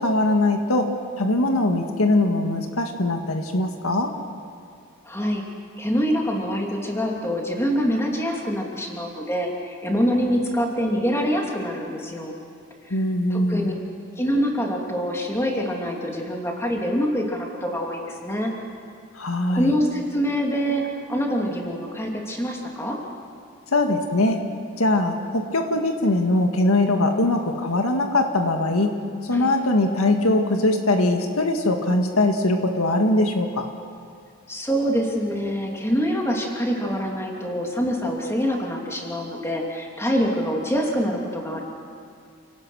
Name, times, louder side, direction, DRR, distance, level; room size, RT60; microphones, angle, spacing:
voice 1, 0.0-4.1 12.9-13.8 19.1-19.7 23.7-24.4 24.8-29.0 29.2-33.7, left 2 dB, 85° left, 4 dB, 1.9 m, -21 dB
voice 2, 5.0-5.4 5.8-12.3 12.8-13.0 13.3-13.7 14.2-18.5 19.5-23.0 29.3-29.5 34.5-41.6, equal, 10° left, 0 dB, 2.8 m, -25 dB
29.0 x 18.0 x 6.4 m, 2.4 s
head